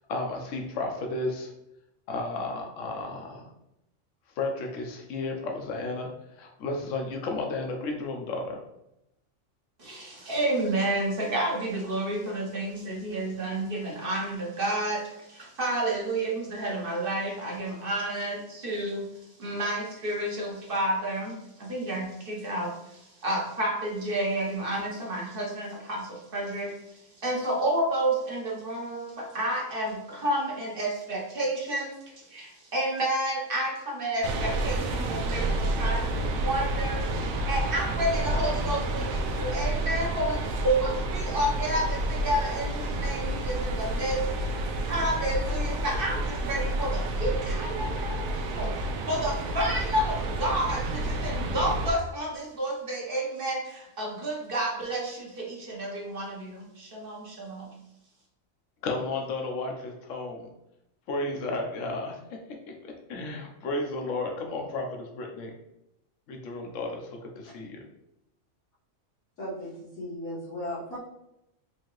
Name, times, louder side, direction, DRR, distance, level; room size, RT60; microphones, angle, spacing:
voice 1, 0.1-1.5 2.1-3.5 4.4-8.6 58.8-60.5 61.1-62.4 62.7-65.5 66.3-67.8, left 2 dB, 70° left, 2 dB, 1.1 m, -33 dB
voice 2, 9.8-19.1 19.4-44.5 44.8-57.7, right 1 dB, 45° right, -2 dB, 1.0 m, -30 dB
sound 1, 34.2-51.9, right 1 dB, 85° right, 1.0 m, -29 dB
voice 3, 69.4-71.0, left 1 dB, 90° left, -12 dB, 1.7 m, -36 dB
4.6 x 2.8 x 3.0 m, 0.84 s
omnidirectional pair, 1.4 m